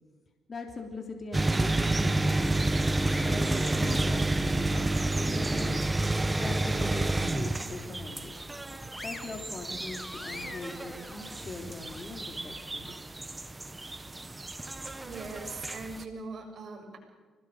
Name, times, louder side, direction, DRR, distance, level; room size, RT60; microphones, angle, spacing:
voice 1, 0.5-2.6 3.2-5.9 6.4-8.3 9.0-12.9, left 3 dB, 35° left, 3 dB, 3.2 m, -41 dB
sound 1, 1.3-16.0, right 2 dB, 15° right, 1.2 m, -30 dB
sound 2, 2.5-4.5 4.9-6.4 6.8-6.9 7.4-8.2 8.6-12.0, left 1 dB, 15° left, 2.3 m, -46 dB
voice 2, 15.0-17.0, right 3 dB, 50° right, 2 dB, 6.9 m, -41 dB
25.0 x 19.5 x 6.6 m, 1.4 s
cardioid pair, 90°, 0 cm